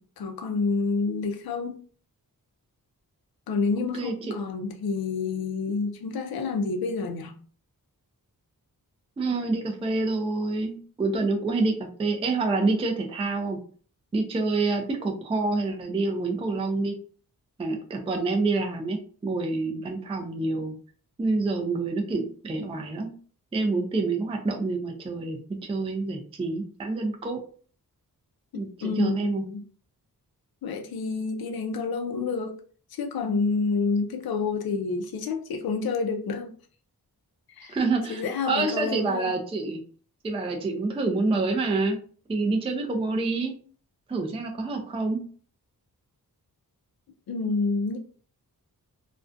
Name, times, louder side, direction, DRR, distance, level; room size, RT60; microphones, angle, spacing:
voice 1, 0.0-1.8 3.5-7.3 28.5-29.7 30.6-32.6 32.9-36.5 37.5-37.8 38.1-39.3 47.3-48.0, left 4 dB, 80° left, 0.5 m, -29 dB
voice 2, 3.9-4.4 9.2-13.6 14.1-17.0 17.6-20.7 21.2-23.1 23.5-25.4 25.7-27.4 28.6-29.4 37.7-39.8 40.2-42.0 42.3-43.5 44.1-45.2, right 3 dB, 15° right, 0.3 m, -27 dB
2.4 x 2.2 x 2.4 m
wide cardioid pair, 145°, 36 cm